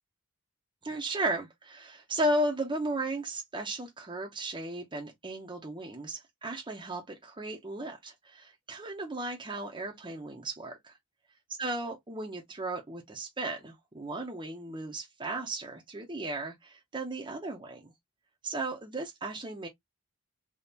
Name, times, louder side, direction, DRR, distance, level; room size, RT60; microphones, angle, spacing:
voice 1, 0.8-10.9 11.6-17.9 18.4-19.7, right 1 dB, 20° right, 0.8 m, -35 dB
3.6 x 3.1 x 2.7 m
head